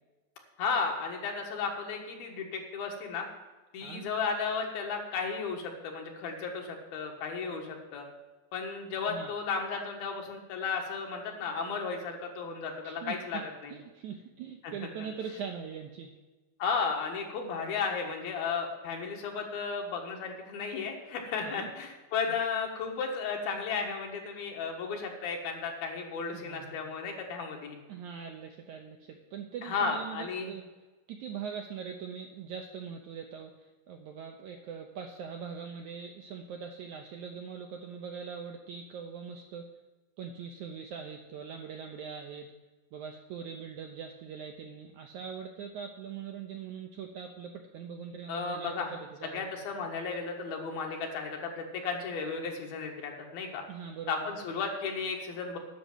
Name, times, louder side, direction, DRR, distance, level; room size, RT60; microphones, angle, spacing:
voice 1, 0.6-3.3 3.7-8.1 8.5-13.7 14.6-14.7 16.6-27.8 29.6-30.5 48.3-48.9 49.3-53.6 54.1-55.6, left 5 dB, 75° left, 1 dB, 3.4 m, -34 dB
voice 2, 12.8-13.4 13.7-16.1 21.4-21.7 26.3-26.8 27.9-30.6 31.1-39.7 40.2-42.5 42.9-49.5 53.7-54.3, right 7 dB, 75° right, 3 dB, 1.8 m, -42 dB
10.0 x 6.7 x 9.0 m, 1.2 s
omnidirectional pair, 4.3 m